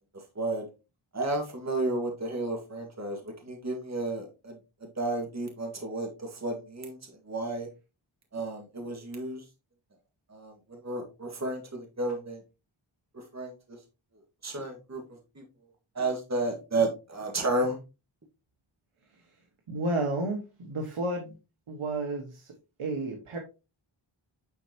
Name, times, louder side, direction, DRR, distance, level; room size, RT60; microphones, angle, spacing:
voice 1, 0.3-0.6 1.1-7.7 8.3-9.4 10.3-12.4 13.1-13.8 14.4-15.0 15.3-15.4 15.9-17.8, right 2 dB, 35° right, 3 dB, 1.8 m, -32 dB
voice 2, 19.7-21.3 21.7-22.5 22.8-23.4, right 2 dB, 90° right, 2 dB, 1.5 m, -31 dB
9.9 x 4.5 x 2.9 m, 0.29 s
wide cardioid pair, 65°, 49 cm